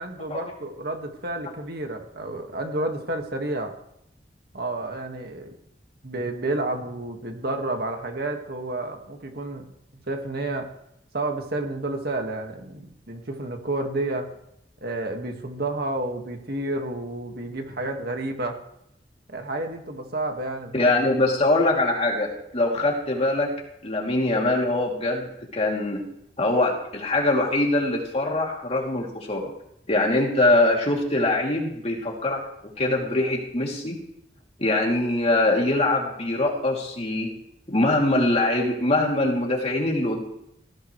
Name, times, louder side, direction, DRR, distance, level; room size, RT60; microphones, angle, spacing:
voice 1, 0.0-3.8 4.5-5.6 6.0-9.7 10.1-10.7 11.1-14.3 14.8-18.6 19.3-20.7, right 2 dB, 60° right, 3 dB, 2.0 m, -30 dB
voice 2, 20.7-23.5 23.8-26.0 26.4-29.5 29.9-34.0 34.6-37.3 37.7-40.3, left 2 dB, 35° left, -1 dB, 3.1 m, -23 dB
19.0 x 15.5 x 3.3 m, 0.76 s
head